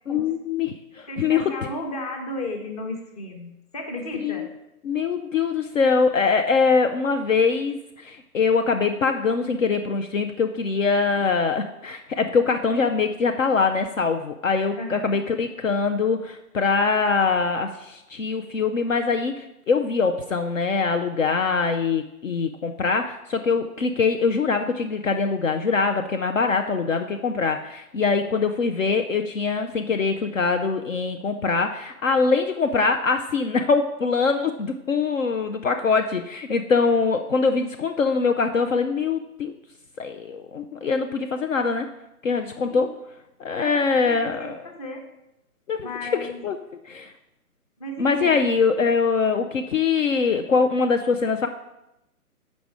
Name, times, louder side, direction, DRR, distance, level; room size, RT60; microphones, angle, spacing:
voice 1, 0.1-1.5 4.2-4.5 4.8-39.5 40.0-41.9 42.2-42.9 43.4-44.6 45.7-46.6 46.9-47.1 48.0-51.5, left 4 dB, 55° left, 6 dB, 0.5 m, -23 dB
voice 2, 1.1-4.5 14.8-15.1 42.7-42.9 43.6-45.0 45.8-46.4 47.8-48.3, left 1 dB, 25° left, 4 dB, 0.8 m, -34 dB
6.9 x 5.2 x 4.8 m, 0.87 s
figure-of-eight pair, 145°, 46 cm